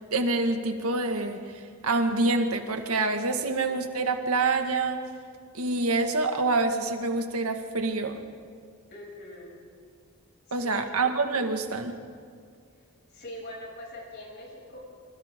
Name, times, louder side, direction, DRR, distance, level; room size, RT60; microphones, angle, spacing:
voice 1, 0.1-1.4 1.8-5.0 5.5-8.2 10.5-12.0, right 3 dB, 90° right, 5 dB, 1.9 m, -26 dB
voice 2, 8.9-9.6 10.5-10.8 13.1-14.8, left 1 dB, 50° left, -2 dB, 7.2 m, -42 dB
28.5 x 25.5 x 3.8 m, 2.2 s
head